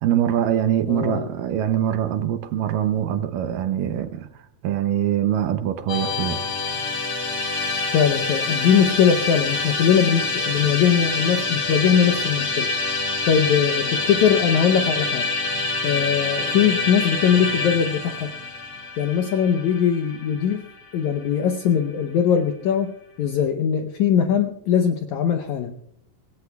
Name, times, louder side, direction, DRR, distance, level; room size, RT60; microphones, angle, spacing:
voice 1, 0.0-4.3 4.6-6.4, right 10 dB, 75° right, 2.1 m, -23 dB
voice 2, 0.9-1.3 7.9-12.7 13.3-15.3 15.8-18.3 19.0-20.7 20.9-22.9 23.2-25.8, left 8 dB, 80° left, 1.7 m, -21 dB
Musical instrument, 5.9-21.1, left 3 dB, 45° left, 1.9 m, -26 dB
25.0 x 19.0 x 2.3 m
omnidirectional pair, 4.4 m